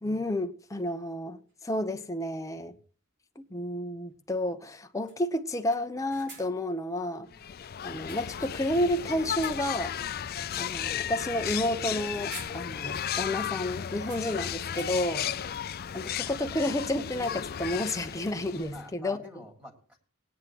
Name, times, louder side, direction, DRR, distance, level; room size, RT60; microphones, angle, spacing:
voice 1, 0.0-2.7 3.4-7.3 7.8-9.9 10.6-15.3 15.9-19.2, left 1 dB, 15° left, 0.9 m, -31 dB
sound 1, 1.5-1.6 3.6-3.8 4.1-4.2 4.6-4.8 5.1-6.7 7.8-8.9 9.2-9.9 10.3-10.5 11.8-12.0 12.3-13.0 13.3-13.4 14.0-15.2, right 2 dB, 60° right, 3.6 m, -51 dB
sound 2, 7.3-18.9, left 9 dB, 50° left, 0.4 m, -34 dB
voice 2, 15.1-15.4 18.7-20.0, left 1 dB, 5° right, 3.1 m, -49 dB
19.5 x 9.8 x 3.0 m
head